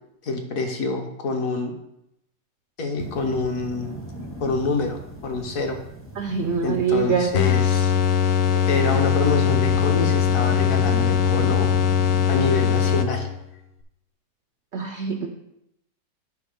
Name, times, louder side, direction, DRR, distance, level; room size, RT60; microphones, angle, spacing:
voice 1, 0.2-1.7 2.8-4.0 4.4-5.8 6.6-7.9 8.7-11.7 12.3-13.3, left 3 dB, 55° left, 4 dB, 1.2 m, -26 dB
sound 1, 3.0-13.1, right 1 dB, 20° left, 0.3 m, -36 dB
voice 2, 6.2-7.4 14.7-15.3, right 5 dB, 90° right, 5 dB, 0.6 m, -24 dB
sound 2, 7.3-13.5, left 8 dB, 75° left, 1.2 m, -21 dB
8.4 x 4.3 x 5.2 m, 0.83 s
omnidirectional pair, 1.9 m